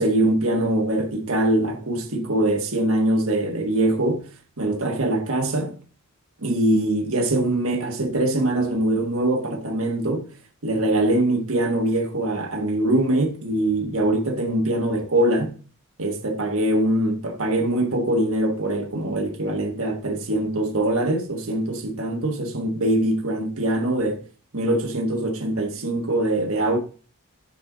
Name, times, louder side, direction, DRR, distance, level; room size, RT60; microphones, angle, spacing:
voice 1, 0.0-4.3 4.6-5.8 6.4-10.3 10.6-15.5 16.0-24.2 24.5-26.8, right 1 dB, 70° right, 1.4 m, -23 dB
11.0 x 4.3 x 3.9 m
head